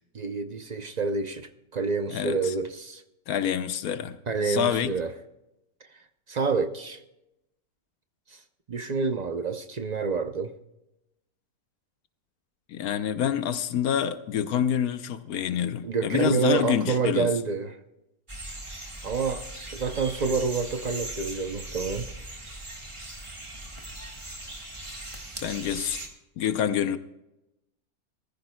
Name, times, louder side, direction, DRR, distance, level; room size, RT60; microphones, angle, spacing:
voice 1, 0.1-3.0 4.3-5.1 6.3-7.0 8.7-10.5 15.8-17.8 19.0-19.5 19.7-22.0 25.7-25.9, right 4 dB, 50° right, 0.5 m, -28 dB
voice 2, 2.1-2.5 3.3-4.2 4.4-4.9 12.7-17.3 25.4-26.0 26.4-27.0, left 9 dB, 80° left, 1.2 m, -27 dB
sound 1, 18.3-26.1, right 2 dB, 20° right, 1.5 m, -39 dB
20.5 x 14.5 x 2.2 m
omnidirectional pair, 1.5 m